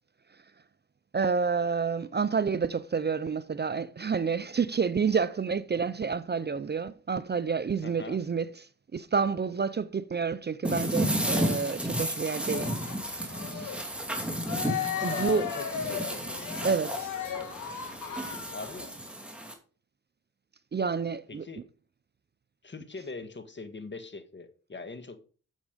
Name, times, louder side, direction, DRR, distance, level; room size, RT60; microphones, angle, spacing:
voice 1, 1.1-12.7 13.0-13.9 15.0-15.4 16.6-17.1 20.7-21.5, right 5 dB, 35° right, 0.6 m, -29 dB
voice 2, 7.8-8.2 14.9-16.2 18.5-19.0 21.3-21.6 22.6-25.2, left 3 dB, 35° left, 1.6 m, -41 dB
sound 1, 10.6-19.5, right 1 dB, 5° right, 2.7 m, -33 dB
Cheering, 12.4-18.9, left 8 dB, 85° left, 1.7 m, -36 dB
9.0 x 7.3 x 5.1 m
cardioid pair, 65°, 31 cm